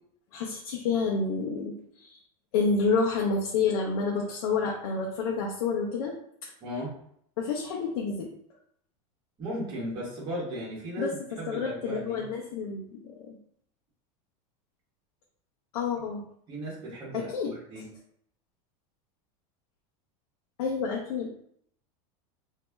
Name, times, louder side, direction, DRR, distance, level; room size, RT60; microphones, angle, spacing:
voice 1, 0.3-2.2 2.5-6.1 6.4-6.5 7.4-8.3 11.0-11.1 11.5-13.4 15.7-16.2 17.1-17.5 20.6-21.3, left 4 dB, 80° left, -1 dB, 0.8 m, -29 dB
voice 2, 6.6-6.9 9.4-12.2 16.5-17.8, equal, 25° right, -6 dB, 1.4 m, -36 dB
3.1 x 2.8 x 3.4 m, 0.68 s
supercardioid pair, 160°, 18 cm